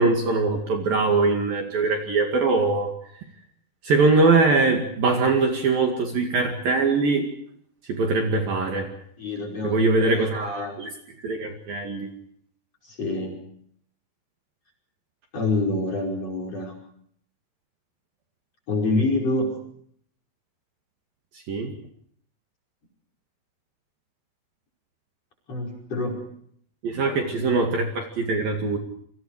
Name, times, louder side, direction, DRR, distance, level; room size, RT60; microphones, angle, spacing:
voice 1, 0.0-2.9 3.8-7.3 7.9-8.9 9.6-10.9 11.2-12.1 21.5-21.7 26.8-28.8, right 3 dB, 55° right, 2 dB, 3.5 m, -22 dB
voice 2, 9.2-10.8 13.0-13.4 15.3-16.7 18.7-19.5 25.5-26.2 26.9-27.0, left 2 dB, 30° left, 0 dB, 6.0 m, -26 dB
28.5 x 25.0 x 4.9 m, 0.66 s
omnidirectional pair, 5.6 m